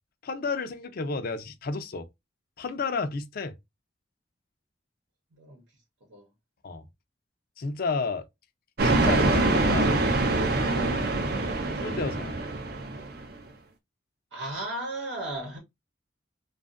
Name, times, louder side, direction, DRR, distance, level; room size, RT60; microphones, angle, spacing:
voice 1, 0.2-2.1 2.6-3.5 6.6-6.8 7.6-8.2 8.8-10.0 11.8-12.3, left 4 dB, 55° left, 0.5 m, -31 dB
sound 1, 8.8-13.3, right 2 dB, 55° right, 0.6 m, -25 dB
voice 2, 10.7-11.1 14.3-15.6, right 1 dB, 80° right, 0.9 m, -35 dB
2.5 x 2.4 x 2.4 m
head